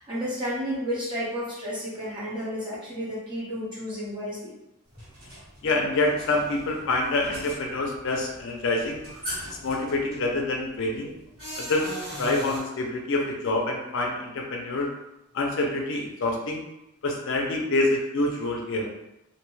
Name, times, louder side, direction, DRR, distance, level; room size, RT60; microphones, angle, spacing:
voice 1, 0.0-4.5, equal, 25° right, -7 dB, 0.9 m, -32 dB
sound 1, 4.9-12.6, equal, 70° right, 1.4 m, -40 dB
voice 2, 5.6-9.0 9.4-11.1 11.6-11.9 12.2-14.9 15.3-16.6 17.0-18.9, left 2 dB, 60° left, 1 dB, 0.5 m, -26 dB
2.6 x 2.2 x 3.1 m, 0.87 s
head